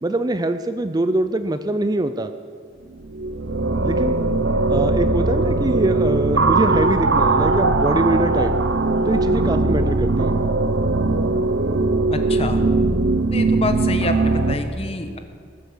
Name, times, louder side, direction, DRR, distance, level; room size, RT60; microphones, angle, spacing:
voice 1, 0.0-2.3 3.8-4.2 4.7-8.5 9.1-10.4, right 1 dB, 20° right, 10 dB, 0.5 m, -23 dB
sound 1, 2.9-14.5, right 3 dB, 80° right, 0.9 m, -20 dB
sound 2, 4.2-12.1, right 1 dB, 50° right, 1.0 m, -37 dB
voice 2, 12.1-12.6 13.3-15.2, left 2 dB, 30° left, 7 dB, 1.1 m, -27 dB
20.0 x 8.1 x 7.3 m, 2.2 s
head